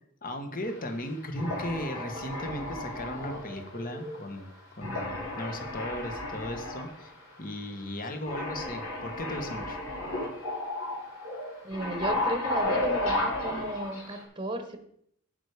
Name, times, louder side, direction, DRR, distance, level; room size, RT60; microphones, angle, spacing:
voice 1, 0.2-4.5 4.8-7.1 7.4-9.8, left 1 dB, 40° left, 5 dB, 1.4 m, -36 dB
sound 1, 0.6-1.0 1.4-4.4 4.8-7.0 7.3-7.4 8.3-14.2, left 1 dB, 75° left, 3.1 m, -33 dB
voice 2, 11.6-14.8, right 1 dB, 20° right, 7 dB, 1.1 m, -34 dB
9.2 x 8.1 x 5.0 m, 0.68 s
head